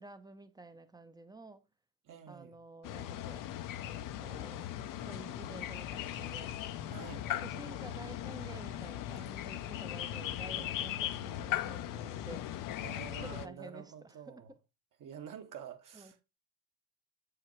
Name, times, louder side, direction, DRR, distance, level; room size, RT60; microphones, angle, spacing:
voice 1, 0.0-1.6 2.3-3.5 3.8-4.7 5.0-7.0 7.4-14.4 15.9-16.1, right 2 dB, 10° right, 0.6 m, -51 dB
voice 2, 2.0-2.6 6.9-7.8 10.6-11.0 12.8-14.5 15.0-16.2, right 8 dB, 45° right, 1.1 m, -49 dB
sound 1, 2.8-13.5, left 12 dB, 45° left, 0.6 m, -39 dB
7.1 x 4.9 x 3.0 m
supercardioid pair, 80°, 44 cm